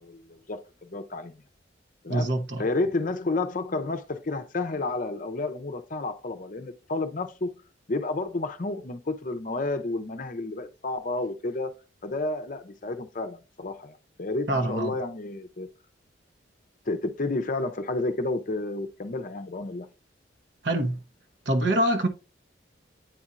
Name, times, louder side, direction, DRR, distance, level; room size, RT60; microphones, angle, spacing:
voice 1, 0.0-1.4 2.0-2.3 2.6-7.5 7.9-11.8 12.0-15.7 16.9-19.9, left 2 dB, 45° left, 0.6 m, -31 dB
voice 2, 2.1-2.7 14.5-15.0 20.6-21.0 21.4-22.1, right 1 dB, 65° right, 1.0 m, -25 dB
8.8 x 4.3 x 2.5 m
head